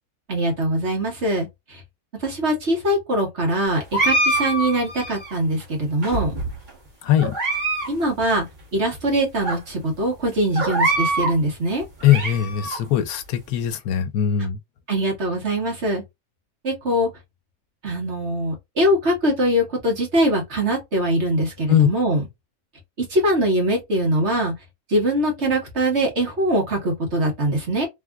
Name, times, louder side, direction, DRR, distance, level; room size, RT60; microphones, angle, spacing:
voice 1, 0.3-1.8 2.2-6.3 7.9-8.4 8.7-11.8 14.9-16.0 16.6-17.1 17.8-22.2 23.1-24.5 24.9-27.9, right 1 dB, 50° right, 1.5 m, -22 dB
sound 1, 3.9-5.3 6.0-6.7 7.2-7.9 8.2-8.3 9.0-9.1 9.4-9.6 10.5-11.4 11.8-12.8, right 2 dB, 35° right, 1.5 m, -24 dB
voice 2, 7.0-7.3 12.0-14.6 21.7-21.9, left 10 dB, 80° left, 1.1 m, -20 dB
3.4 x 2.5 x 2.2 m
omnidirectional pair, 1.5 m